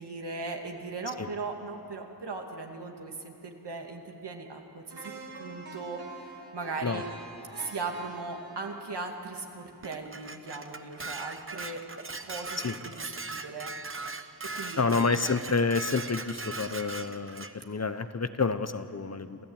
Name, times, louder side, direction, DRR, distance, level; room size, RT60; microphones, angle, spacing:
voice 1, 0.0-5.1 5.4-7.1 7.5-11.8 12.2-13.7 14.5-15.0 15.2-15.3, right 3 dB, 85° right, 2 dB, 2.4 m, -38 dB
sound 1, 4.9-10.9 11.3-11.4, right 3 dB, 70° right, 2.8 m, -47 dB
Dishes pots and pans, 9.8-17.5, right 3 dB, 30° right, 1.1 m, -39 dB
voice 2, 14.8-19.5, left 4 dB, 40° left, 11 dB, 1.0 m, -29 dB
27.5 x 14.5 x 8.9 m, 2.7 s
wide cardioid pair, 70°, 40 cm